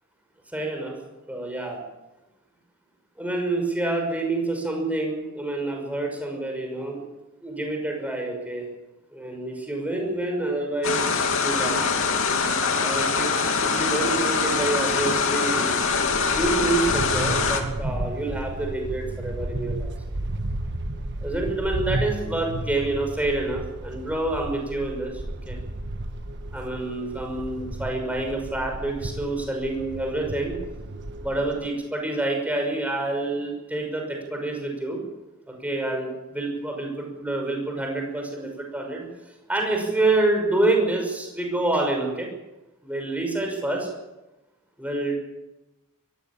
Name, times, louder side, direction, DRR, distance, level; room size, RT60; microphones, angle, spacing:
voice 1, 0.5-0.9 1.3-1.8 3.2-7.0 7.4-8.7 9.1-11.8 12.7-15.8 16.2-19.9 21.2-25.6 26.5-30.6 31.2-35.0 35.5-39.1 39.5-42.3 42.8-43.9 44.8-45.1, right 2 dB, 5° right, 2 dB, 6.0 m, -27 dB
sound 1, 10.8-17.6, left 5 dB, 65° left, 2.9 m, -23 dB
sound 2, 15.8-31.7, right 1 dB, 55° right, 1.4 m, -33 dB
22.0 x 15.5 x 8.8 m, 1.0 s
head